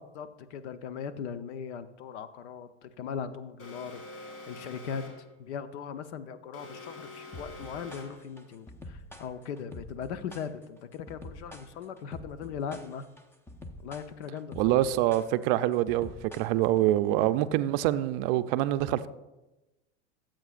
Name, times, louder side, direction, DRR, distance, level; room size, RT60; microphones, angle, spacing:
voice 1, 0.1-13.1 13.8-14.8, left 7 dB, 65° left, 0.9 m, -39 dB
Alarm, 3.6-5.3 6.5-8.3, left 2 dB, 40° left, 2.8 m, -46 dB
sound 1, 7.3-16.9, left 1 dB, 5° left, 0.6 m, -47 dB
voice 2, 14.6-19.1, right 14 dB, 50° right, 0.5 m, -25 dB
16.5 x 7.9 x 2.5 m
hypercardioid pair, 105°, 36 cm